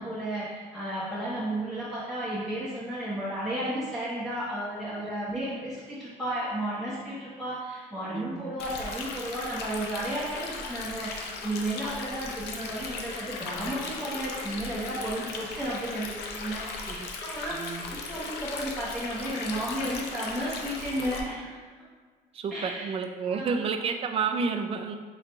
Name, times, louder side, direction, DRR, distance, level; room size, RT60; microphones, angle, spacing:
voice 1, 0.0-21.6 22.5-22.9 23.3-23.7, right 1 dB, ahead, -9 dB, 0.7 m, -33 dB
voice 2, 8.1-8.5 16.9-17.1 17.5-17.9 22.3-25.0, right 5 dB, 35° right, 6 dB, 0.3 m, -30 dB
Stream, 8.6-21.2, left 4 dB, 80° left, 0.5 m, -37 dB
3.8 x 3.0 x 3.3 m, 1.5 s
cardioid pair, 110°, 17 cm